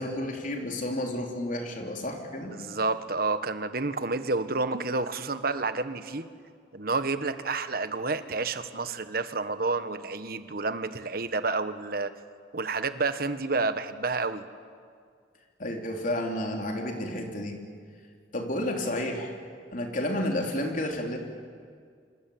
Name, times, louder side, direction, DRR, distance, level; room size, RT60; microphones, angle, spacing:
voice 1, 0.0-2.5 15.6-17.6 18.3-19.3 19.7-21.2, left 1 dB, 50° left, 2 dB, 3.8 m, -31 dB
voice 2, 2.5-6.3 6.7-12.1 12.5-14.4, right 3 dB, 55° right, 10 dB, 1.4 m, -29 dB
26.5 x 25.5 x 8.7 m, 2.1 s
head